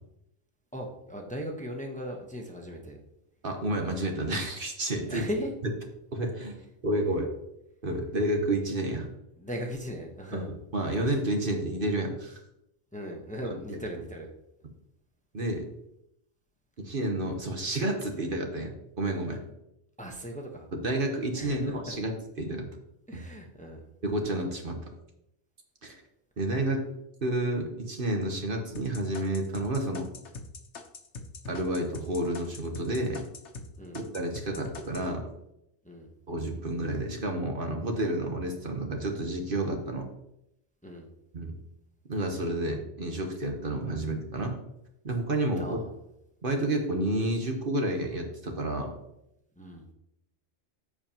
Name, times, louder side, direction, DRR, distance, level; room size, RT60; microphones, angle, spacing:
voice 1, 0.7-3.0 5.1-5.5 9.4-10.5 12.9-14.3 20.0-20.7 21.3-22.0 23.1-23.8 33.8-34.0 35.8-36.1 40.8-41.1 45.6-45.9 49.6-49.8, equal, 5° left, 1 dB, 1.0 m, -38 dB
voice 2, 3.4-5.3 5.6-5.7 6.1-6.5 6.8-7.3 7.8-9.1 10.3-12.4 13.7-13.8 15.3-15.7 16.8-19.4 20.7-22.1 22.4-22.7 23.1-23.2 24.0-24.8 25.8-26.0 26.4-26.9 27.2-30.1 31.5-33.2 33.9-35.3 36.3-40.1 41.3-41.5 42.1-44.6 45.0-45.8 46.4-48.9, right 1 dB, 50° right, 3 dB, 1.3 m, -30 dB
sound 1, 28.7-33.7 33.9-35.1, left 3 dB, 80° left, 1.3 m, -42 dB
14.0 x 4.8 x 2.9 m, 0.82 s
omnidirectional pair, 1.2 m